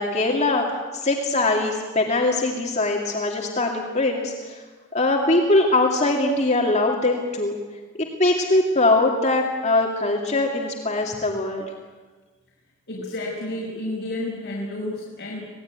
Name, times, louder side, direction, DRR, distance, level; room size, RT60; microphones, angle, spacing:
voice 1, 0.0-4.6 4.9-7.6 8.0-11.7, left 2 dB, 35° left, 0 dB, 2.4 m, -22 dB
voice 2, 12.9-15.5, left 1 dB, 50° left, -5 dB, 5.7 m, -31 dB
26.0 x 19.0 x 9.6 m, 1.3 s
head